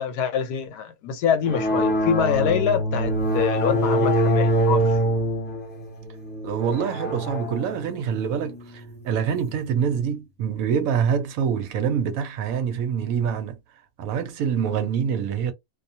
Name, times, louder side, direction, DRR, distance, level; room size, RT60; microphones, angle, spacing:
voice 1, 0.0-4.9, left 8 dB, 80° left, 1.2 m, -25 dB
sound 1, 1.5-9.6, equal, 15° left, 0.3 m, -24 dB
voice 2, 6.4-13.6 14.0-15.5, right 7 dB, 70° right, 0.9 m, -25 dB
2.4 x 2.3 x 2.6 m
omnidirectional pair, 1.7 m